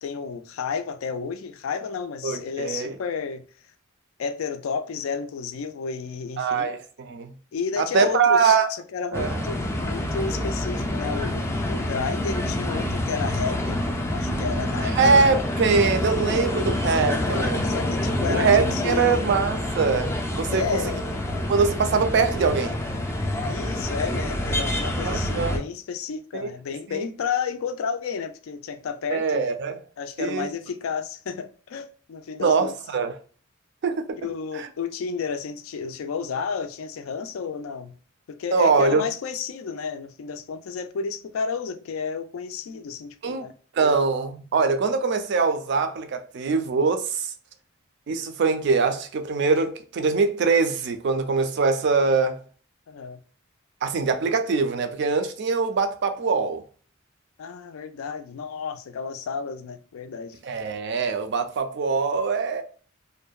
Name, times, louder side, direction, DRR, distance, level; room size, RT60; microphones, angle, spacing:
voice 1, 0.0-3.4 4.2-6.7 7.5-15.2 17.2-19.2 20.5-21.0 23.5-29.5 30.0-32.7 34.2-37.9 38.3-43.5 52.9-53.2 57.4-60.4, left 6 dB, 85° left, 0.4 m, -32 dB
voice 2, 2.2-3.0 6.4-7.3 7.8-8.7 9.1-9.4 14.8-17.7 18.3-20.8 21.5-22.8 25.0-25.6 26.3-26.5 26.9-27.0 29.1-29.8 30.2-30.5 32.4-33.1 33.8-34.2 34.5-34.7 38.5-39.0 43.2-43.5 43.7-47.3 48.1-52.4 53.8-56.6 60.4-62.6, right 4 dB, 55° right, 0.4 m, -23 dB
sound 1, 9.1-25.6, left 1 dB, 15° left, 0.3 m, -27 dB
2.6 x 2.1 x 2.2 m
head